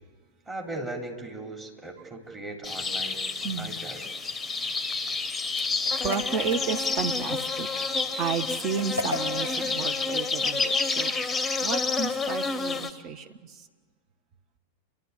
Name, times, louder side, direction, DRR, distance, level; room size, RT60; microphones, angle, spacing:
voice 1, 0.5-3.2 3.6-4.1, right 2 dB, 20° right, 0 dB, 3.5 m, -38 dB
sound 1, 2.6-12.9, left 4 dB, 10° left, 1.0 m, -29 dB
voice 2, 3.4-3.7 6.0-7.9 8.2-11.1 11.6-13.7, right 6 dB, 35° right, 8 dB, 1.3 m, -32 dB
sound 2, 5.8-7.2 8.8-9.6, left 2 dB, 85° right, 2.7 m, -35 dB
29.5 x 12.0 x 8.3 m, 1.5 s
figure-of-eight pair, 90°, 0 cm